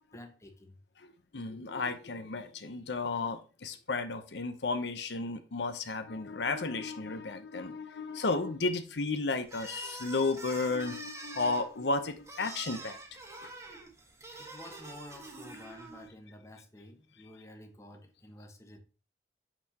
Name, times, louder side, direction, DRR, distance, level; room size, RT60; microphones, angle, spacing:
voice 1, 0.1-0.8 14.4-18.8, left 1 dB, 15° left, 4 dB, 1.1 m, -51 dB
voice 2, 1.0-13.0 13.4-13.5, left 3 dB, 75° left, 8 dB, 0.8 m, -33 dB
sound 1, 9.5-16.1, right 2 dB, 15° right, 1.4 m, -46 dB
6.5 x 6.0 x 2.8 m, 0.35 s
head